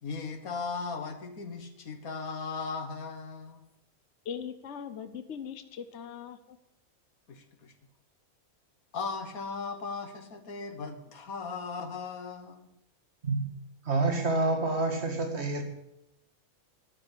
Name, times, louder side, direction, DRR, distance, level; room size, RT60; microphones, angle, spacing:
voice 1, 0.0-3.6 7.3-7.7 8.9-12.7, left 4 dB, 70° left, 8 dB, 1.9 m, -37 dB
voice 2, 4.2-6.6, left 7 dB, 55° left, 10 dB, 1.1 m, -40 dB
voice 3, 13.8-15.6, right 2 dB, 45° right, 4 dB, 2.3 m, -28 dB
13.0 x 10.0 x 8.4 m, 0.85 s
omnidirectional pair, 1.5 m